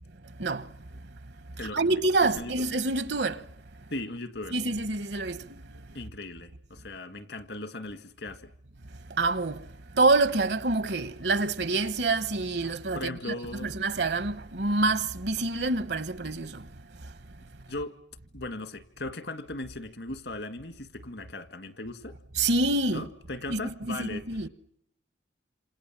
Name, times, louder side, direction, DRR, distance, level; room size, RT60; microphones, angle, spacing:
voice 1, 0.4-0.7 1.6-3.4 4.5-5.8 9.1-9.6 9.9-16.7 22.3-23.1 23.5-24.5, right 3 dB, 70° right, 1.1 m, -27 dB
voice 2, 1.6-2.0 2.4-2.5 3.9-4.6 5.9-8.5 12.9-13.7 17.7-18.0 18.3-22.1 22.9-24.2, left 2 dB, 75° left, 1.9 m, -38 dB
27.5 x 26.5 x 7.4 m
head